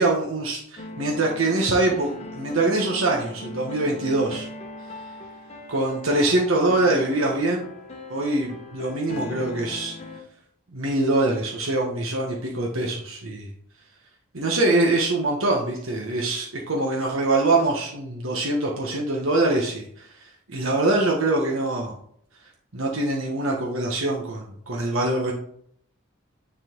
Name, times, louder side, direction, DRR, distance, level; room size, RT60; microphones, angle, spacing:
voice 1, 0.0-4.5 5.7-7.7 8.1-9.9 10.7-13.5 14.3-20.1 20.5-21.9 22.7-25.3, right 2 dB, 85° right, -1 dB, 1.3 m, -24 dB
sound 1, 0.8-10.2, left 2 dB, 30° left, 1.0 m, -39 dB
9.4 x 4.3 x 3.8 m, 0.65 s
head